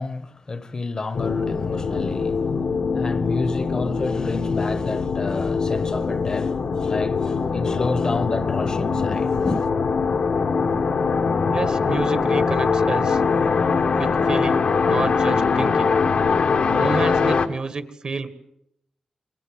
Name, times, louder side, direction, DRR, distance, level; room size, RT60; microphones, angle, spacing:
voice 1, 0.0-2.4 2.9-9.7, left 3 dB, 35° left, 1.2 m, -29 dB
sound 1, 1.1-17.5, left 5 dB, 65° left, 1.4 m, -22 dB
voice 2, 11.5-13.2 14.0-16.0 16.8-18.3, right 4 dB, 45° right, 1.7 m, -29 dB
27.0 x 23.0 x 7.8 m
wide cardioid pair, 145°, 2 cm